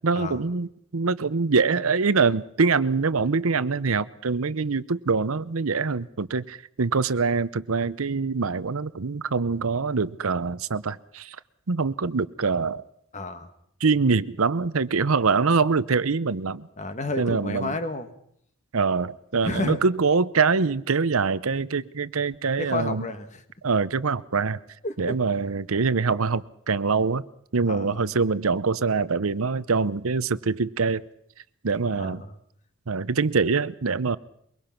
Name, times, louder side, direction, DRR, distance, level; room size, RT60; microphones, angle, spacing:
voice 1, 0.0-11.4 11.7-12.8 13.8-16.6 17.2-17.7 18.7-23.1 23.6-24.6 25.0-27.2 27.5-31.0 31.6-32.2 32.9-34.2, right 4 dB, 85° right, 16 dB, 0.8 m, -24 dB
voice 2, 13.1-13.5 16.8-18.1 19.4-19.8 22.6-23.4 24.8-25.2 27.7-28.0 31.8-32.4, left 2 dB, 35° left, 9 dB, 1.6 m, -31 dB
23.0 x 23.0 x 5.9 m, 0.71 s
head